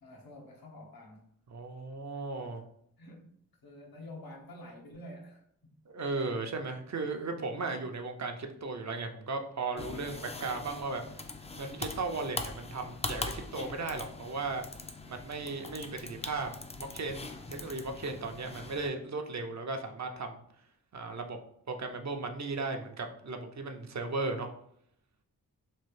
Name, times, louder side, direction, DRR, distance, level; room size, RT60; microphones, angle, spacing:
voice 1, 0.0-1.3 3.0-3.3 3.6-5.4, left 1 dB, 80° left, 1 dB, 0.9 m, -48 dB
voice 2, 1.5-2.6 5.9-11.0 11.5-14.6 15.1-20.4 20.9-21.4 21.7-24.5, right 3 dB, 50° right, 5 dB, 0.5 m, -36 dB
sound 1, 9.8-18.9, left 3 dB, 20° left, 0.4 m, -42 dB
3.1 x 2.3 x 3.2 m, 0.70 s
cardioid pair, 50°, 36 cm